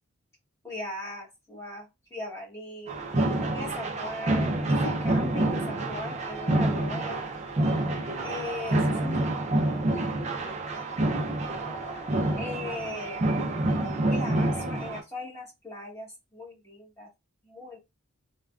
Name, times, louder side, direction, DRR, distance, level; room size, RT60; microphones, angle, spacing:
voice 1, 0.6-3.0 3.5-7.2 8.2-10.1 10.4-10.9 12.4-13.2 14.0-17.1 17.4-17.8, left 2 dB, 15° left, 1.0 m, -39 dB
sound 1, 2.9-15.0, right 1 dB, 30° right, 0.4 m, -27 dB
3.4 x 2.1 x 2.3 m
head